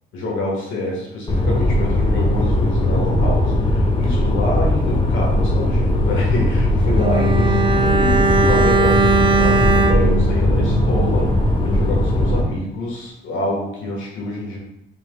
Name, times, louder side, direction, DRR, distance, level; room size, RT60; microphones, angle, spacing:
voice 1, 0.1-11.3 11.6-14.6, left 1 dB, 80° left, -3 dB, 1.5 m, -26 dB
sound 1, 1.3-12.4, left 1 dB, 25° left, 0.8 m, -18 dB
Bowed string instrument, 7.0-11.4 11.7-11.8, right 4 dB, 25° right, 0.4 m, -19 dB
5.8 x 3.3 x 2.3 m, 0.82 s
cardioid pair, 90°, 20 cm